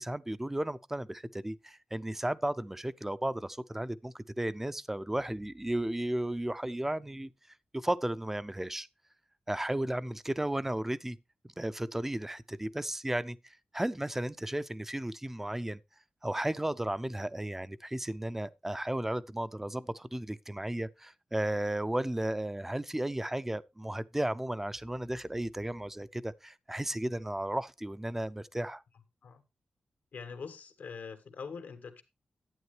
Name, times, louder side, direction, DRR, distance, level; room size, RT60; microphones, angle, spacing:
voice 1, 0.0-7.3 7.7-8.9 9.5-11.2 11.6-15.8 16.2-28.8, right 1 dB, 10° right, 0.5 m, -34 dB
voice 2, 30.1-32.0, left 5 dB, 80° left, 1.5 m, -43 dB
11.0 x 8.9 x 3.2 m
cardioid pair, 75°, 3 cm